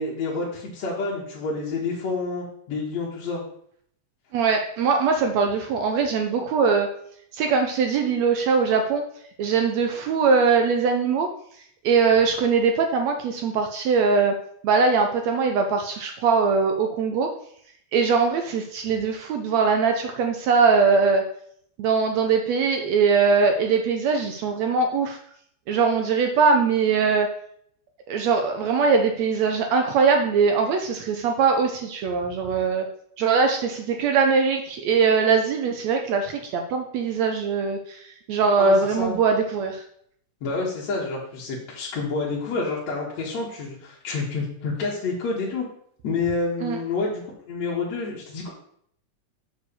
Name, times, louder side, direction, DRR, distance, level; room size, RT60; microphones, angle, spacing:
voice 1, 0.0-3.4 38.6-39.2 40.4-45.6 46.0-47.2 47.5-48.5, left 3 dB, 60° left, -5 dB, 2.5 m, -28 dB
voice 2, 4.3-6.9 7.3-9.0 9.4-11.3 11.8-14.4 14.6-17.3 17.9-21.3 21.8-25.2 25.7-27.3 28.1-32.9 33.2-39.8 46.6-46.8, right 5 dB, 75° right, 4 dB, 1.7 m, -21 dB
6.8 x 4.7 x 6.9 m, 0.66 s
omnidirectional pair, 3.8 m